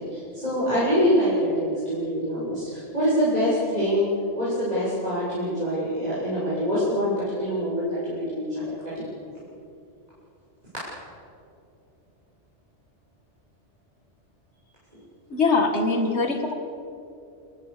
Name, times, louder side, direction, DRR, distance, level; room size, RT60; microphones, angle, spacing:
voice 1, 0.0-4.1 4.4-7.1 7.4-9.1, equal, 35° right, -10 dB, 7.3 m, -25 dB
voice 2, 15.3-16.5, left 3 dB, 70° left, 6 dB, 2.3 m, -22 dB
28.0 x 21.5 x 6.8 m, 2.7 s
omnidirectional pair, 1.2 m